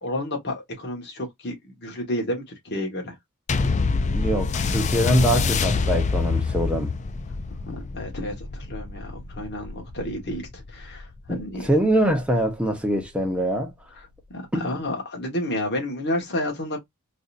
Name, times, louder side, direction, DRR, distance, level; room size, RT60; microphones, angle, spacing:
voice 1, 0.0-3.1 7.7-11.7 14.3-16.8, left 1 dB, 50° left, 1.4 m, -31 dB
sound 1, 3.5-12.3 13.0-13.1, left 4 dB, 30° left, 0.3 m, -26 dB
voice 2, 4.1-6.9 11.3-13.7 14.5-14.6, right 1 dB, 5° right, 0.9 m, -24 dB
3.9 x 2.7 x 2.5 m
head